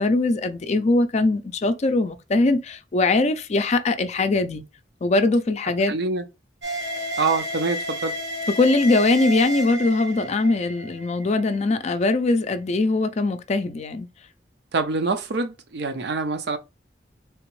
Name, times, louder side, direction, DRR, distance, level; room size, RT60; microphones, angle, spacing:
voice 1, 0.0-4.6 5.0-5.9 8.6-14.1, left 2 dB, 40° left, 0.4 m, -21 dB
voice 2, 5.9-6.3 7.2-8.2 14.7-16.6, right 3 dB, 65° right, 0.5 m, -25 dB
sound 1, 6.6-12.0, right 1 dB, 85° right, 1.1 m, -31 dB
3.5 x 2.9 x 3.0 m
head